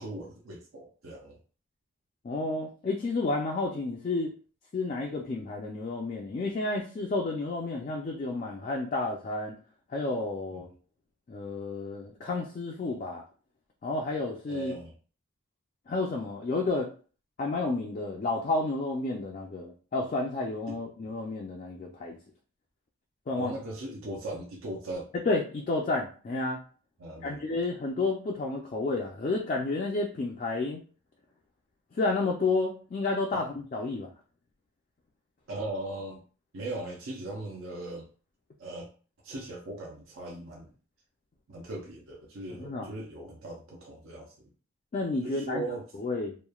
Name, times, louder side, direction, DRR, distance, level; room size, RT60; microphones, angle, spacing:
voice 1, 0.0-1.4 10.5-10.6 14.5-14.9 20.7-20.8 23.3-25.1 27.0-27.4 33.3-33.4 35.5-36.2 36.5-38.1 38.6-38.9 39.2-40.7 41.5-44.5 45.2-45.8, right 2 dB, 75° right, -1 dB, 0.5 m, -38 dB
voice 2, 2.2-4.3 4.7-9.6 9.9-10.7 11.3-13.2 13.8-14.7 15.9-16.9 17.4-22.2 23.3-23.5 25.1-26.6 27.2-30.8 31.9-34.1 42.6-42.9 44.9-45.6 46.0-46.4, left 3 dB, 40° left, -1 dB, 0.3 m, -31 dB
3.0 x 2.1 x 2.3 m, 0.39 s
head